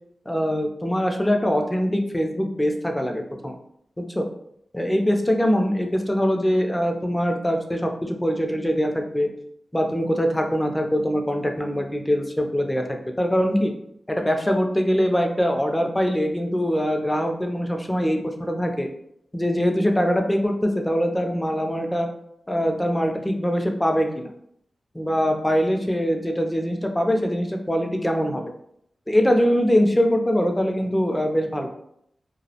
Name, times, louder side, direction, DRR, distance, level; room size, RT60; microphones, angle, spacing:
voice 1, 0.3-3.5 4.0-4.3 4.7-9.3 9.7-13.7 14.1-18.9 19.3-22.1 22.5-24.3 24.9-28.4 29.1-31.7, equal, 15° left, 3 dB, 0.4 m, -23 dB
2.3 x 2.0 x 2.7 m, 0.73 s
wide cardioid pair, 75°, 0 cm